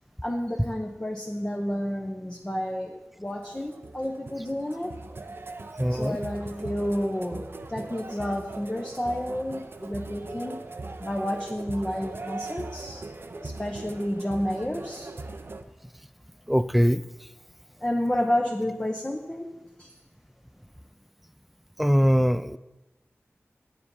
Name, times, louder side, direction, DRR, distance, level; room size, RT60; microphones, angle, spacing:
voice 1, 0.2-5.0 5.9-10.6 11.0-15.2 17.8-19.5 19.8-20.0, equal, 20° left, 1.0 m, -30 dB
sound 1, 3.3-15.6, right 3 dB, 50° right, 0.7 m, -40 dB
voice 2, 5.8-6.2 16.5-17.0 21.8-22.6, equal, ahead, 0.4 m, -21 dB
9.6 x 8.3 x 5.5 m
wide cardioid pair, 70°, 5 cm